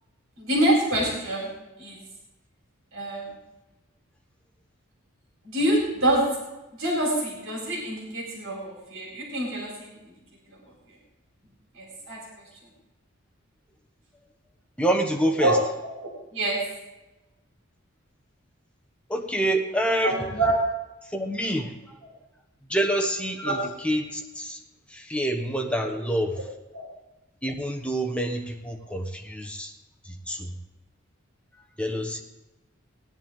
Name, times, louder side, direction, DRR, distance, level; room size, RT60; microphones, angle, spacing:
voice 1, 0.4-1.5 1.8-2.0 2.9-3.3 5.4-6.2 6.8-10.0 10.5-10.6 11.7-12.2 15.4-15.6 16.0-16.6 20.0-20.5 23.4-23.6 26.7-26.8, right 1 dB, 70° right, -2 dB, 4.0 m, -26 dB
voice 2, 14.8-15.6 19.1-20.4 21.0-21.7 22.7-24.6 24.9-26.4 27.4-29.7 30.0-30.5 31.8-32.2, right 1 dB, 5° left, 3 dB, 1.1 m, -27 dB
18.5 x 10.5 x 3.7 m, 1.0 s
head